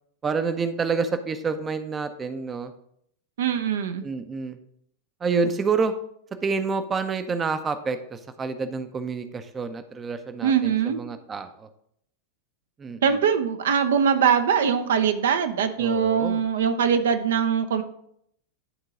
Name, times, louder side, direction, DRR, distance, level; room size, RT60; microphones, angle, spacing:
voice 1, 0.2-2.7 4.0-4.6 5.2-5.9 6.4-11.7 12.8-13.2 15.8-16.4, right 4 dB, 20° right, 10 dB, 0.6 m, -28 dB
voice 2, 3.4-4.0 10.4-11.0 13.0-17.8, right 7 dB, 60° right, 8 dB, 0.6 m, -22 dB
11.0 x 3.8 x 5.0 m, 0.70 s
figure-of-eight pair, 90°, 0 cm